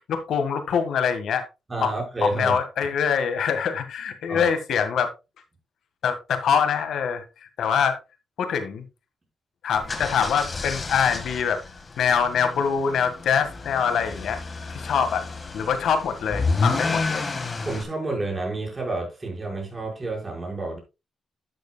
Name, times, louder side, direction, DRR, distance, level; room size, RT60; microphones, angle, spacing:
voice 1, 0.1-1.5 1.8-1.9 2.2-5.1 6.0-7.2 7.6-8.0 8.4-8.8 9.6-11.6 12.0-14.4 14.7-15.3 15.5-17.3, left 7 dB, 80° left, 1.7 m, -24 dB
voice 2, 1.7-2.6 4.3-4.5 17.6-20.8, right 2 dB, 20° right, 5.1 m, -29 dB
sound 1, 9.7-17.8, left 3 dB, 35° left, 1.7 m, -30 dB
11.5 x 8.4 x 2.3 m
cardioid pair, 105°, 0 cm